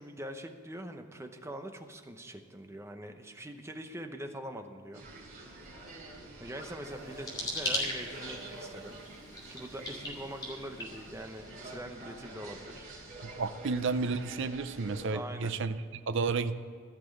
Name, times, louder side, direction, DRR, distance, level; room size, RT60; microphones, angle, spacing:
voice 1, 0.0-5.1 5.8-6.0 6.4-9.0 9.5-12.9 15.1-15.6, right 1 dB, 15° right, 6 dB, 0.8 m, -43 dB
sound 1, 4.9-15.1, right 2 dB, 40° right, 3.6 m, -47 dB
sound 2, 6.8-11.5, left 1 dB, 20° left, 2.8 m, -39 dB
voice 2, 13.2-16.6, right 4 dB, 60° right, 11 dB, 0.5 m, -32 dB
15.0 x 6.1 x 9.0 m, 2.2 s
head